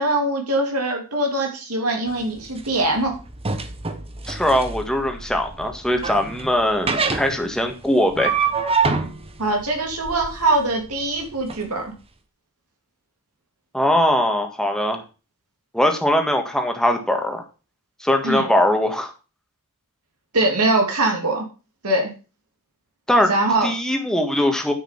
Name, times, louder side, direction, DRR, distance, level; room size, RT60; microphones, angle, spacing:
voice 1, 0.0-3.1 9.4-11.9 18.2-18.4 20.3-21.4 21.8-22.1 23.3-23.7, right 2 dB, 80° right, 2 dB, 2.8 m, -22 dB
sound 1, 2.1-11.6, right 4 dB, 25° right, 1.1 m, -27 dB
voice 2, 4.3-8.3 13.7-15.0 15.7-17.4 18.0-19.1 23.1-23.3 23.6-24.7, left 1 dB, 5° left, 4 dB, 1.7 m, -21 dB
9.7 x 6.7 x 5.9 m, 0.33 s
head